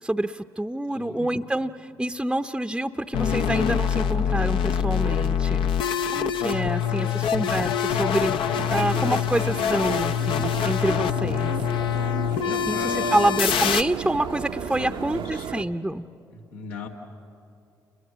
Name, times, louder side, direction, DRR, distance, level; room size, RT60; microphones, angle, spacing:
voice 1, 0.0-5.7 6.1-8.3 8.7-11.5 12.4-16.1, right 1 dB, 10° right, 9 dB, 0.7 m, -27 dB
voice 2, 0.9-1.4 7.0-7.3 12.3-13.2 14.8-15.5 16.3-16.9, left 5 dB, 85° left, 2 dB, 1.6 m, -37 dB
sound 1, 3.1-13.8, left 8 dB, 65° left, 0.7 m, -25 dB
sound 2, 8.5-15.6, right 8 dB, 65° right, 0.8 m, -35 dB
29.0 x 22.0 x 7.5 m, 2.7 s
hypercardioid pair, 45°, 9 cm